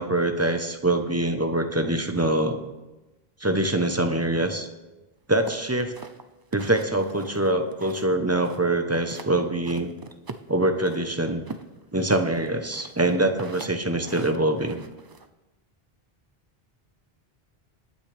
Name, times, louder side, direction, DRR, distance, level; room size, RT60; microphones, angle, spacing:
voice 1, 0.0-2.6 3.4-4.7 5.3-5.9 6.5-9.9 10.5-11.4 11.9-14.8, right 1 dB, 15° right, 6 dB, 0.8 m, -24 dB
sound 1, 5.5-8.1 8.4-9.3 9.6-11.0 11.5-15.3, right 4 dB, 30° right, 0.4 m, -41 dB
20.0 x 9.1 x 3.4 m, 1.1 s
omnidirectional pair, 1.0 m